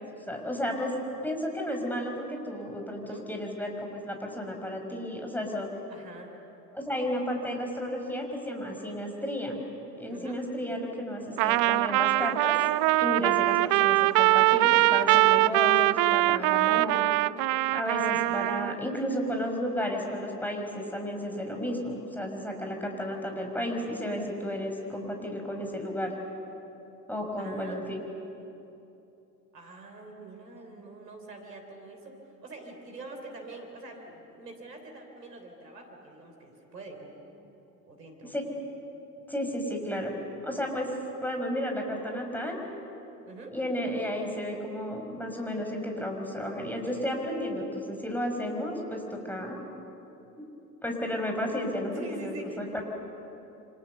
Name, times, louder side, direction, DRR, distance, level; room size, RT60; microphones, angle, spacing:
voice 1, 0.3-0.9 1.2-5.7 6.7-9.6 9.9-12.6 13.0-17.0 17.7-26.1 27.1-28.0 38.3-38.4 39.3-40.1 40.4-40.9 41.2-42.6 43.5-49.6 50.4-50.5 50.8-52.8, equal, 5° left, 2 dB, 5.6 m, -33 dB
voice 2, 3.0-3.3 5.9-6.3 10.1-10.4 18.1-19.0 27.4-27.8 29.5-37.1 37.8-38.3 43.2-43.6 51.9-52.8, right 2 dB, 85° right, 2 dB, 3.7 m, -45 dB
Trumpet, 11.4-18.7, right 19 dB, 45° right, 0.5 m, -23 dB
29.0 x 25.5 x 6.9 m, 2.9 s
figure-of-eight pair, 65°, 48 cm